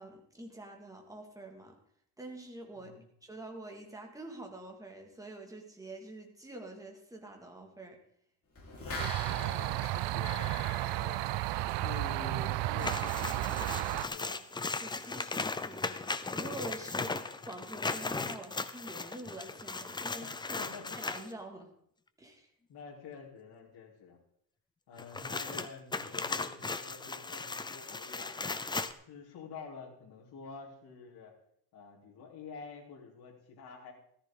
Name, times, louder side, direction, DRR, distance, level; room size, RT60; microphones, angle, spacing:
voice 1, 0.0-1.8 2.2-8.0 14.8-20.6 20.9-21.7 22.2-22.5, right 1 dB, 10° right, 2 dB, 2.1 m, -46 dB
voice 2, 2.7-3.1 9.3-10.5 11.0-11.3 11.7-14.4 20.2-20.3 20.6-21.0 22.7-24.2 24.9-28.4 28.8-31.3 31.7-33.9, left 5 dB, 60° left, -4 dB, 3.6 m, -48 dB
sound 1, 8.5-12.1 12.4-12.5, left 2 dB, 30° left, 4.3 m, -43 dB
sound 2, 9.0-14.1, right 16 dB, 80° right, 0.6 m, -33 dB
sound 3, 12.8-21.3 25.0-28.9, left 3 dB, 10° left, 0.4 m, -37 dB
14.5 x 14.0 x 3.8 m, 0.66 s
cardioid pair, 155°, 42 cm